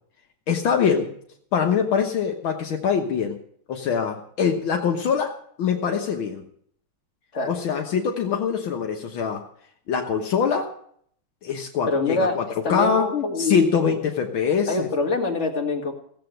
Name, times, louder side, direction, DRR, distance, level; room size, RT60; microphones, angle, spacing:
voice 1, 0.5-1.1 1.5-3.4 3.7-5.3 5.6-6.4 7.5-9.4 9.9-10.7 11.4-13.1 13.4-14.9, left 6 dB, 70° left, 2 dB, 1.9 m, -23 dB
voice 2, 11.9-12.4 12.6-13.7 14.7-15.9, left 3 dB, 35° left, 1 dB, 2.5 m, -24 dB
16.0 x 7.9 x 7.8 m, 0.64 s
omnidirectional pair, 2.3 m